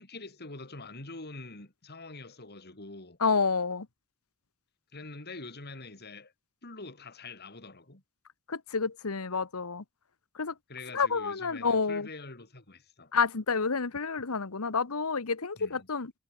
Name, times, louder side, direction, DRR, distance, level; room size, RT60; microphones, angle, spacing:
voice 1, 0.0-3.2 4.9-6.3 6.6-8.0 10.7-13.1 15.6-15.9, left 3 dB, 50° left, 3.7 m, -45 dB
voice 2, 3.2-3.9 8.5-9.8 10.3-10.5 10.9-12.1 13.1-16.1, left 5 dB, 85° left, 1.2 m, -29 dB
head